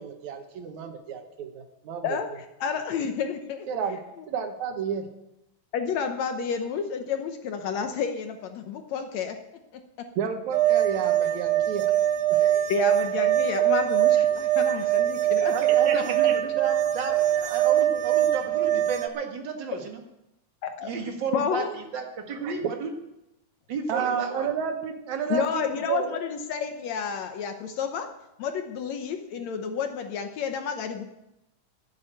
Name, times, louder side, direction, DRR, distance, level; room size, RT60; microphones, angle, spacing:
voice 1, 0.0-2.1 3.7-4.0 4.3-5.1 10.2-11.9 12.3-12.7 15.2-15.5 15.8-16.0 16.2-16.3 22.3-22.5 23.9-26.2, right 7 dB, 70° right, 5 dB, 2.7 m, -31 dB
voice 2, 2.0-3.7 5.7-9.4 9.7-9.8 12.7-15.5 20.6-20.9 21.3-21.7 25.3-28.1 28.4-31.0, left 6 dB, 70° left, 6 dB, 2.0 m, -30 dB
sound 1, 10.5-19.1, right 12 dB, 90° right, 2.4 m, -23 dB
voice 3, 15.4-20.0 20.8-22.9 23.7-24.5, right 5 dB, 40° right, 3 dB, 2.0 m, -33 dB
11.5 x 8.6 x 9.0 m, 0.90 s
omnidirectional pair, 3.6 m